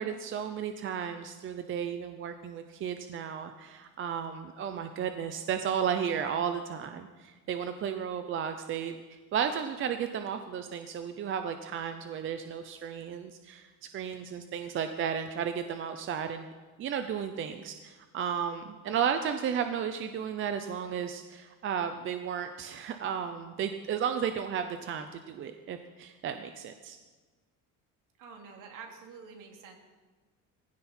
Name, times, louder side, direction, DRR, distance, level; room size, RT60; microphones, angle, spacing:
voice 1, 0.0-13.7 13.9-16.5 16.8-27.0, right 8 dB, 35° right, 8 dB, 0.7 m, -34 dB
voice 2, 28.2-29.8, right 5 dB, 65° right, 2 dB, 3.0 m, -47 dB
20.5 x 16.0 x 4.4 m, 1.3 s
cardioid pair, 180°, 34 cm